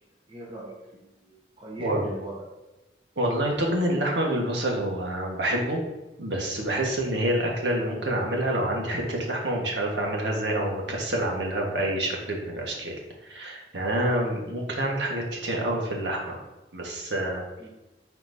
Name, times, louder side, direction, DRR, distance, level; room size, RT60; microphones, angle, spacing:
voice 1, 0.3-2.5 17.6-17.7, right 1 dB, 30° right, -2 dB, 1.1 m, -40 dB
voice 2, 3.2-5.8 6.2-13.0 13.2-16.4 16.7-17.4, right 1 dB, 90° right, -1 dB, 1.4 m, -27 dB
9.6 x 4.4 x 2.7 m, 1.0 s
head